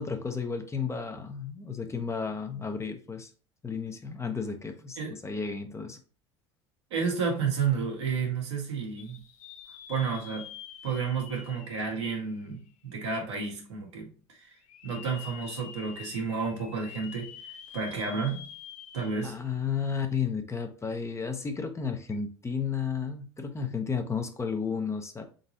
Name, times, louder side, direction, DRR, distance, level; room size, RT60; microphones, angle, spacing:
voice 1, 0.0-3.3 3.6-6.0 19.2-25.2, left 6 dB, 20° left, 0.8 m, -33 dB
voice 2, 6.9-9.2 9.9-10.5 10.8-14.5 14.8-18.4 18.9-19.3, right 5 dB, 85° right, 1.7 m, -31 dB
sound 1, 9.0-12.9 13.4-13.5 14.6-19.6 19.9-20.0 22.0-22.2, left 9 dB, 55° left, 0.7 m, -47 dB
4.0 x 3.9 x 2.8 m
hypercardioid pair, 75°, 14 cm